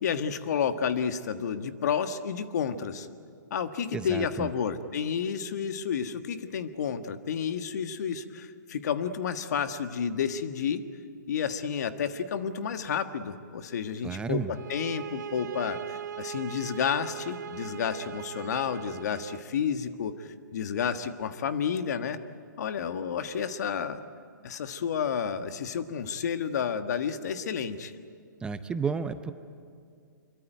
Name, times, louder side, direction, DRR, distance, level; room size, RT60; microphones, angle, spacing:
voice 1, 0.0-3.1 3.5-10.9 11.3-22.2 22.6-24.0 24.4-28.0, left 7 dB, 60° left, 9 dB, 1.5 m, -31 dB
voice 2, 3.9-4.5 14.0-14.5 28.4-29.3, right 6 dB, 10° right, 11 dB, 0.6 m, -32 dB
sound 1, 14.5-19.5, right 9 dB, 65° right, 0.9 m, -40 dB
25.0 x 23.0 x 9.3 m, 2.3 s
hypercardioid pair, 145°, 10 cm